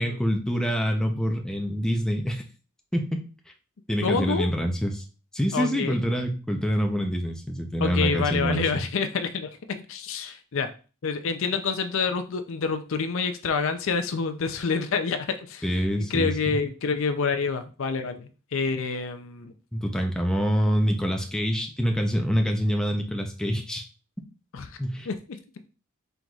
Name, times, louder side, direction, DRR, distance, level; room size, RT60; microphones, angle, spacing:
voice 1, 0.0-2.4 2.9-3.0 3.9-5.0 5.3-8.6 15.6-16.6 19.7-23.9 24.8-25.1, equal, 5° left, 3 dB, 0.5 m, -26 dB
voice 2, 4.0-4.5 5.5-6.0 7.8-10.7 11.0-15.7 16.0-19.5 24.5-24.8 25.1-25.4, left 5 dB, 60° left, 9 dB, 0.5 m, -28 dB
4.5 x 3.9 x 2.3 m, 0.35 s
head